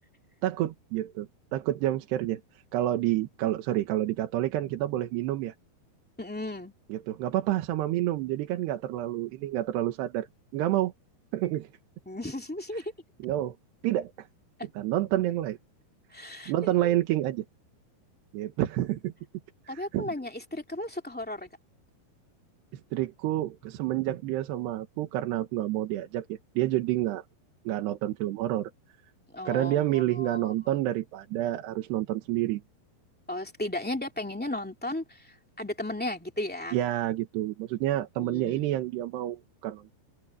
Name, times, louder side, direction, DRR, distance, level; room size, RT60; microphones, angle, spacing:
voice 1, 0.4-5.5 6.9-10.3 10.5-10.9 11.3-11.7 13.2-13.6 13.8-14.3 14.8-15.6 16.5-17.5 18.3-19.1 19.7-20.1 22.7-27.2 27.7-28.7 29.5-32.6 36.7-39.9, right 14 dB, 85° right, 3.4 m, -29 dB
voice 2, 6.2-6.7 12.0-12.9 16.1-16.5 16.8-17.0 19.7-21.5 29.3-30.8 33.3-36.8 38.2-38.6, left 1 dB, 5° left, 1.3 m, -35 dB
omnidirectional pair, 4.7 m